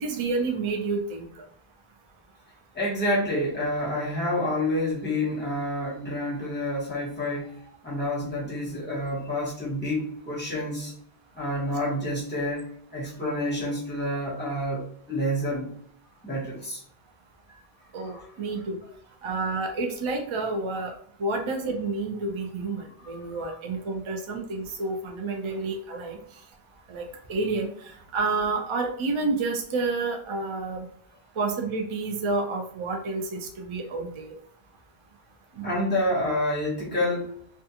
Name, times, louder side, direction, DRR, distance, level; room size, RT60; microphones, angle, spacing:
voice 1, 0.0-1.2 17.9-18.8 19.2-20.9 21.2-26.2 26.9-27.7 28.1-30.8 31.4-34.3 35.6-35.7, right 3 dB, 50° right, 3 dB, 0.4 m, -29 dB
voice 2, 2.7-7.5 7.8-10.9 11.3-12.6 12.9-15.7 16.2-16.8 18.0-18.3 23.0-23.6 35.6-37.3, left 1 dB, 10° left, -6 dB, 1.0 m, -28 dB
2.3 x 2.3 x 2.7 m, 0.64 s
omnidirectional pair, 1.0 m